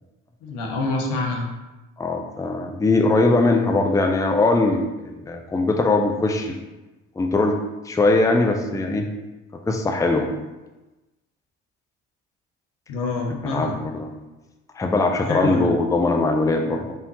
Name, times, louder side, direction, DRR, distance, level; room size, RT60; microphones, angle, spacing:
voice 1, 0.4-1.5 12.9-13.8 15.2-15.8, left 2 dB, 75° left, 0 dB, 1.0 m, -26 dB
voice 2, 2.0-6.5 7.2-7.6 7.9-9.1 9.7-10.3 13.4-14.1 14.8-16.9, left 2 dB, 10° left, 3 dB, 0.5 m, -21 dB
4.6 x 3.5 x 2.7 m, 1.1 s
hypercardioid pair, 65°, 31 cm